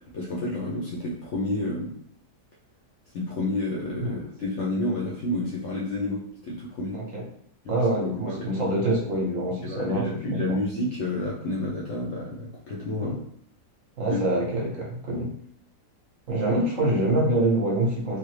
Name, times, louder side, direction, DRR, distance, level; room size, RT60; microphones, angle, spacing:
voice 1, 0.1-1.9 3.1-7.0 7.6-7.8 8.1-8.5 9.6-13.2 14.1-14.2, left 1 dB, 60° left, -4 dB, 0.8 m, -30 dB
voice 2, 6.9-7.2 7.7-10.6 13.0-13.1 14.0-15.3 16.3-18.2, right 1 dB, 60° right, -3 dB, 1.1 m, -25 dB
3.4 x 2.0 x 3.1 m, 0.67 s
omnidirectional pair, 1.7 m